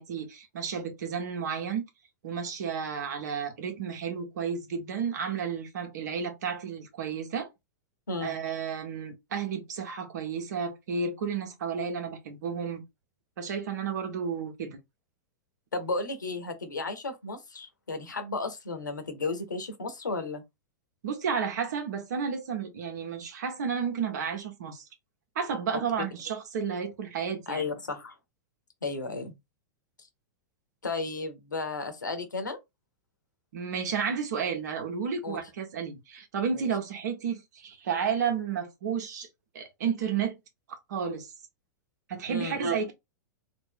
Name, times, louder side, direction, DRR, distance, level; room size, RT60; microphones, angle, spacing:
voice 1, 0.0-1.8 2.2-7.5 8.2-12.8 13.4-14.8 21.0-24.9 25.3-27.7 33.5-39.3 39.5-40.4 40.9-41.3 42.1-42.9, right 6 dB, 65° right, 1.1 m, -32 dB
voice 2, 15.7-20.4 25.7-25.8 27.5-28.2 28.8-29.3 30.8-32.6 35.2-35.4 36.5-36.7 42.3-42.6, left 3 dB, 85° left, 0.9 m, -34 dB
2.9 x 2.6 x 3.7 m
hypercardioid pair, 100°, 10 cm